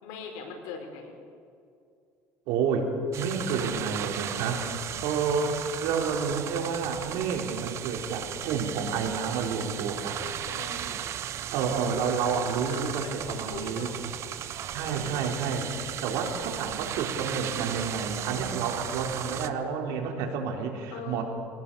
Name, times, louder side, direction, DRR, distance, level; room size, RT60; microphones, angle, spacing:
voice 1, 0.0-1.1 4.4-5.0 10.5-11.0 12.7-13.9 14.8-15.3 20.9-21.2, left 5 dB, 85° left, 3 dB, 4.7 m, -41 dB
voice 2, 2.5-2.9 3.2-4.7 5.0-10.3 11.5-13.9 14.7-15.7 16.0-21.2, right 6 dB, 75° right, 2 dB, 4.1 m, -30 dB
sound 1, 3.1-19.5, right 10 dB, 50° right, 1.0 m, -36 dB
23.0 x 19.0 x 7.0 m, 2.4 s
cardioid pair, 120°, 6 cm